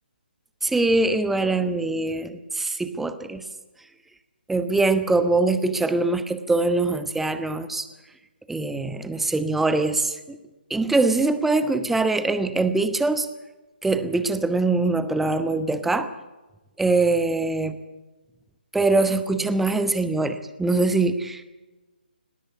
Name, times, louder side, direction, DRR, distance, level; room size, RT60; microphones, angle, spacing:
voice 1, 0.6-3.4 4.5-7.9 8.5-10.4 10.7-13.3 13.8-16.1 16.8-17.8 18.7-21.4, right 3 dB, 5° right, 11 dB, 1.0 m, -23 dB
19.0 x 17.5 x 9.2 m, 1.1 s
figure-of-eight pair, 140°, 6 cm